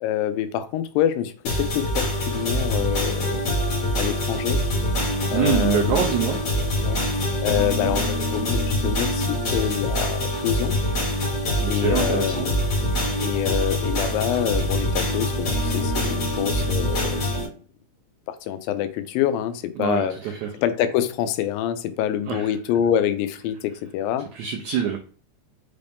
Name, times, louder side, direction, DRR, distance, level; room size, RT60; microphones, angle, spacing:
voice 1, 0.0-3.4 4.0-4.6 5.3-6.1 6.8-10.8 11.7-12.6 13.2-17.5 18.3-20.2 20.5-24.3, left 11 dB, 85° left, 2.3 m, -26 dB
sound 1, 1.5-17.5, left 1 dB, 55° left, 1.9 m, -24 dB
voice 2, 5.3-6.5 11.6-12.5 19.8-20.5 22.3-22.5 24.3-25.0, right 8 dB, 90° right, 1.6 m, -25 dB
5.8 x 2.6 x 3.4 m
omnidirectional pair, 4.0 m